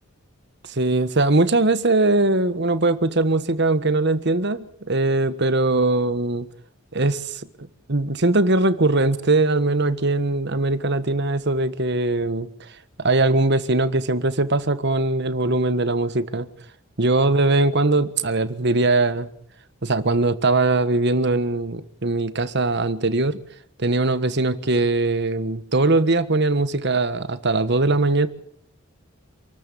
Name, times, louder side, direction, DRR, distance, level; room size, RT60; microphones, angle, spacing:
voice 1, 0.7-6.5 6.9-12.5 13.0-16.5 17.0-19.3 19.8-23.4 23.8-28.3, right 2 dB, 55° right, 1.5 m, -21 dB
28.0 x 13.5 x 8.5 m
head